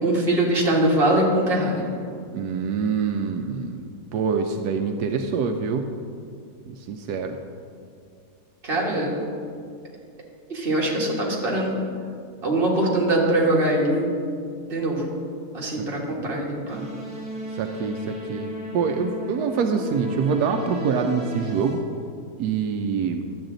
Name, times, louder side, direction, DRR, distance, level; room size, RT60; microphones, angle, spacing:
voice 1, 0.0-1.9 8.6-9.2 10.5-11.8 12.4-14.1 14.6-15.1 15.5-16.9, right 1 dB, 35° right, -3 dB, 1.8 m, -22 dB
voice 2, 2.3-3.8 4.1-5.9 6.7-7.4 8.9-9.0 17.6-21.8 22.4-23.2, right 5 dB, 85° right, 5 dB, 1.1 m, -25 dB
sound 1, 16.7-21.8, left 1 dB, 5° right, 1.6 m, -35 dB
12.0 x 8.0 x 3.9 m, 2.3 s
omnidirectional pair, 1.7 m